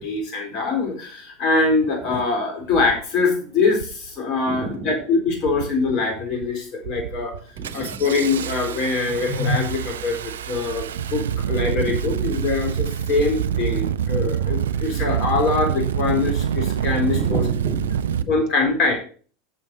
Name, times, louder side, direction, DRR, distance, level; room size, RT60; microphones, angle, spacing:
voice 1, 0.0-7.3 7.7-17.4 18.3-19.0, left 3 dB, 45° left, 3 dB, 3.9 m, -23 dB
Engine starting, 1.9-2.0 2.7-3.0 3.7-4.1 4.4-4.9 5.4-5.9 6.3-6.5 6.8-18.2, right 9 dB, 75° right, 0.5 m, -26 dB
voice 2, 4.4-4.9 7.5-8.0 11.8-12.4 17.1-18.3, right 4 dB, 45° right, 3 dB, 2.7 m, -33 dB
11.0 x 7.0 x 4.2 m, 0.41 s
figure-of-eight pair, 80°, 0 cm